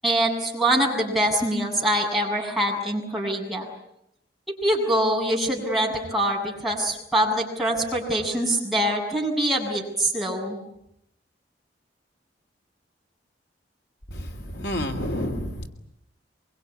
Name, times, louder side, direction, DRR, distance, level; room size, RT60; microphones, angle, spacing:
voice 1, 0.0-3.7 4.5-10.6, right 1 dB, ahead, -3 dB, 7.4 m, -24 dB
voice 2, 14.1-15.7, equal, 65° left, 5 dB, 2.9 m, -29 dB
25.0 x 23.5 x 9.7 m, 0.78 s
head